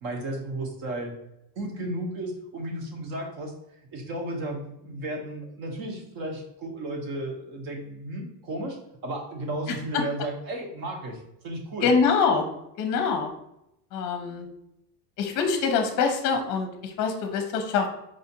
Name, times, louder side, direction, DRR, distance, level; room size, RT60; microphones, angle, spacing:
voice 1, 0.0-1.1 1.5-8.8 9.0-11.9, right 1 dB, 55° right, 2 dB, 1.0 m, -34 dB
voice 2, 11.8-12.5 12.8-13.3 13.9-14.5 15.2-17.9, left 5 dB, 45° left, 5 dB, 0.6 m, -24 dB
4.9 x 2.4 x 2.8 m, 0.82 s
cardioid pair, 155°, 44 cm